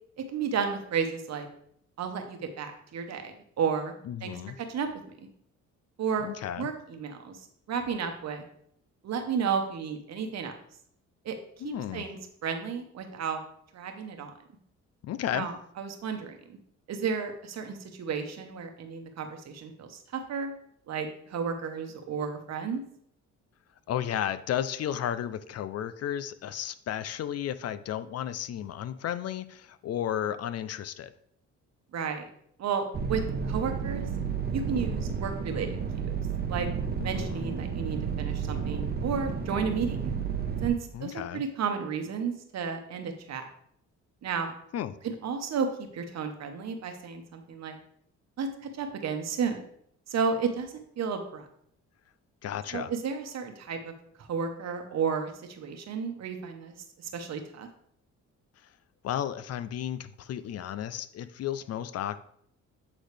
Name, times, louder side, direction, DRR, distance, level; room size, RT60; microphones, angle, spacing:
voice 1, 0.3-1.5 2.0-3.9 4.2-4.9 6.0-6.3 6.6-7.4 7.7-8.4 9.0-10.5 11.2-11.4 11.6-13.4 13.7-14.3 15.3-16.6 16.9-20.5 20.9-22.8 31.9-32.3 32.6-34.1 34.5-36.1 36.5-36.7 37.0-40.1 40.6-43.5 44.2-44.5 45.0-45.7 45.9-47.8 48.4-48.5 48.7-49.6 50.1-51.5 52.7-53.9 54.2-56.7 57.1-57.7, right 6 dB, 60° right, 6 dB, 1.1 m, -32 dB
voice 2, 4.0-4.6 6.2-6.7 11.6-12.1 15.0-15.5 23.9-31.1 37.0-37.5 40.9-41.4 44.7-45.0 52.4-52.9 59.0-62.2, left 10 dB, 55° left, 13 dB, 0.4 m, -33 dB
sound 1, 32.9-40.7, right 6 dB, 30° right, 0.8 m, -32 dB
8.4 x 3.9 x 3.3 m, 0.68 s
cardioid pair, 90°, 30 cm